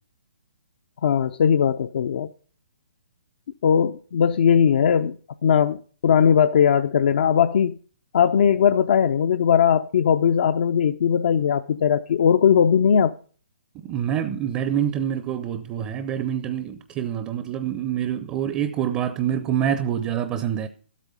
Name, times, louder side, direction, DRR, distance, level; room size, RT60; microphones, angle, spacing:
voice 1, 1.0-2.3 3.6-5.2 5.4-5.8 6.0-7.8 8.1-13.1, left 8 dB, 55° left, 0.6 m, -19 dB
voice 2, 13.8-20.7, right 9 dB, 20° right, 0.6 m, -26 dB
12.5 x 8.4 x 5.4 m
hypercardioid pair, 145°, 6 cm